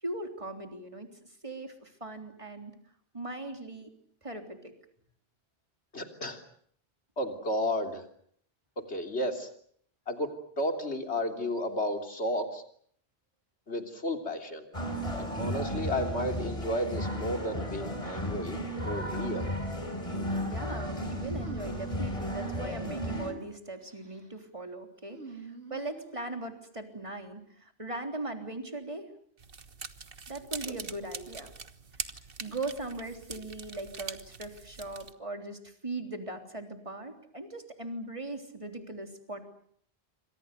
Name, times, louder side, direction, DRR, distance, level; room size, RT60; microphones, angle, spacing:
voice 1, 0.0-1.1 1.4-2.7 3.1-3.9 4.2-4.7 20.4-29.1 30.3-31.5 32.4-39.4, right 2 dB, 30° right, 5 dB, 3.6 m, -39 dB
voice 2, 5.9-6.4 7.2-8.1 8.9-9.5 10.1-10.3 10.6-12.6 13.7-14.6 15.2-18.6 18.8-19.5 30.7-30.8, left 1 dB, 85° left, 5 dB, 3.5 m, -32 dB
sound 1, 14.7-23.3, equal, 30° left, 4.3 m, -34 dB
sound 2, 21.4-22.0 22.8-23.5 23.8-24.3 25.1-26.3, right 4 dB, 80° right, 4.1 m, -46 dB
sound 3, 29.4-35.1, right 5 dB, 60° right, 1.6 m, -43 dB
28.0 x 26.0 x 6.8 m, 0.64 s
omnidirectional pair, 1.1 m